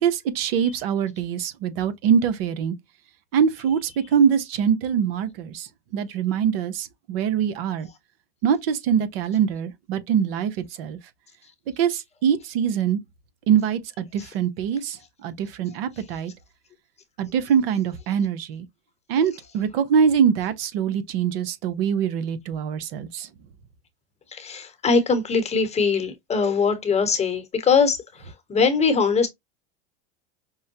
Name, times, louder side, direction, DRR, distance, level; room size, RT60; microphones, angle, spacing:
voice 1, 0.0-2.7 3.3-7.9 8.4-11.0 11.8-13.0 13.5-16.3 17.2-18.7 19.1-23.3, right 8 dB, 70° right, 0.9 m, -23 dB
voice 2, 24.3-28.0 28.5-29.3, left 5 dB, 20° left, 1.1 m, -21 dB
5.4 x 2.1 x 2.7 m
hypercardioid pair, 115°, 31 cm